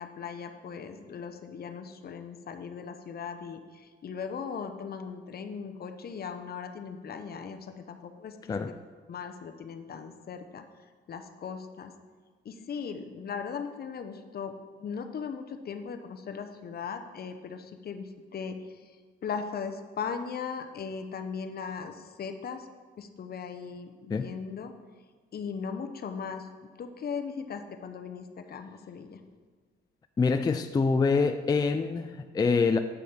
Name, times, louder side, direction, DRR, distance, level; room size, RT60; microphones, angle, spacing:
voice 1, 0.0-8.5 9.1-10.6 11.1-11.9 12.4-19.0 19.2-22.7 23.0-24.7 25.3-26.5 26.8-29.2, left 6 dB, 50° left, 8 dB, 0.8 m, -38 dB
voice 2, 30.2-32.8, left 4 dB, 20° left, 8 dB, 0.3 m, -25 dB
8.1 x 5.3 x 5.9 m, 1.5 s
cardioid pair, 90°, 20 cm